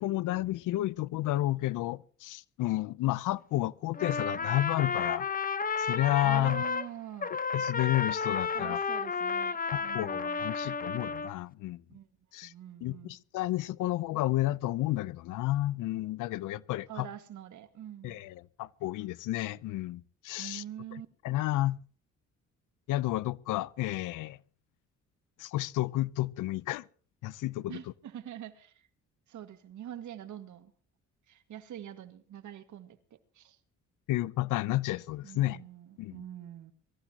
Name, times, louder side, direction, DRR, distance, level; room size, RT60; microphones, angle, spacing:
voice 1, 0.0-5.3 5.8-6.6 7.5-8.8 9.7-11.8 12.3-12.5 12.8-17.1 18.0-20.6 21.2-21.8 22.9-24.4 25.4-26.8 27.2-27.8 34.1-35.6 36.0-36.2, left 16 dB, 90° left, 0.7 m, -31 dB
Trumpet, 3.9-6.9 7.2-11.3, left 5 dB, 30° left, 1.0 m, -32 dB
voice 2, 6.2-7.3 8.5-10.5 11.9-12.1 12.4-13.2 16.9-18.2 20.4-21.1 27.7-28.9 29.3-30.7 31.3-33.0 33.4-33.6 35.2-36.7, right 10 dB, 75° right, 2.0 m, -45 dB
23.5 x 15.0 x 2.9 m
cardioid pair, 90°, 30 cm